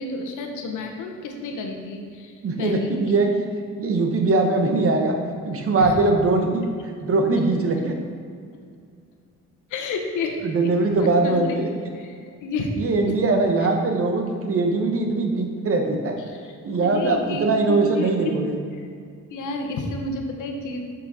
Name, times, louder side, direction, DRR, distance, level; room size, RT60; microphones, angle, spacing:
voice 1, 0.0-3.0 5.8-5.9 9.7-10.4 11.0-11.4 11.9-12.7 13.1-13.2 16.3-16.5 16.8-18.3 19.3-20.8, left 3 dB, 80° left, 2 dB, 1.1 m, -30 dB
voice 2, 2.4-3.5 3.7-5.2 5.4-7.9 10.4-11.7 12.7-16.2 16.6-18.6, right 3 dB, 50° right, 3 dB, 1.2 m, -21 dB
7.6 x 6.0 x 4.1 m, 2.2 s
cardioid pair, 90°, 30 cm